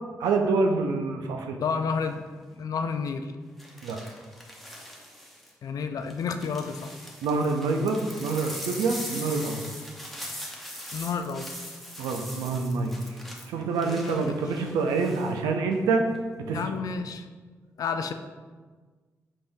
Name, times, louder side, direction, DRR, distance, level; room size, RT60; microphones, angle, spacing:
voice 1, 0.2-1.6 3.8-4.0 7.2-9.6 12.0-13.0 13.5-16.0 16.5-16.6, right 4 dB, 90° right, 4 dB, 0.4 m, -26 dB
voice 2, 1.5-3.3 5.6-6.9 10.9-11.5 13.8-14.4 16.5-17.3 17.8-18.1, left 5 dB, 65° left, 8 dB, 0.3 m, -31 dB
sound 1, 2.0-2.3 3.6-5.5 6.1-15.3 15.7-16.2, equal, ahead, 0.9 m, -41 dB
5.2 x 3.4 x 2.6 m, 1.4 s
supercardioid pair, 50°, 7 cm